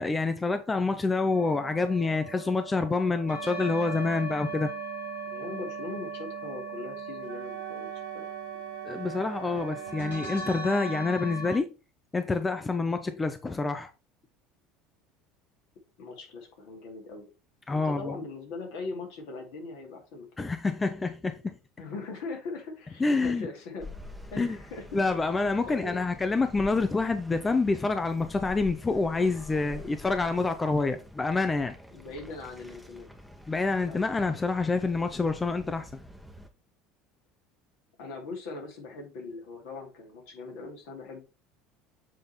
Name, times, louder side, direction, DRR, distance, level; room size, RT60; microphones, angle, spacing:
voice 1, 0.0-4.7 8.8-11.7 12.1-13.9 17.7-18.1 20.4-21.5 23.0-23.5 24.4-24.6 24.9-31.7 33.5-35.9, left 3 dB, 20° left, 0.7 m, -27 dB
sound 1, 1.3-11.6, right 4 dB, 90° left, 3.1 m, -39 dB
voice 2, 5.3-8.3 13.1-13.2 16.0-17.3 17.7-20.5 21.8-24.0 24.3-25.0 25.6-26.0 30.8-31.0 31.9-33.1 33.8-34.0 35.1-35.3 38.0-41.2, left 3 dB, 70° left, 2.5 m, -40 dB
Wind instrument woodwind instrument, 7.2-11.1, right 13 dB, 75° right, 0.7 m, -42 dB
sound 2, 23.8-36.5, left 1 dB, ahead, 1.1 m, -47 dB
7.6 x 3.5 x 4.2 m
hypercardioid pair, 75°, 0 cm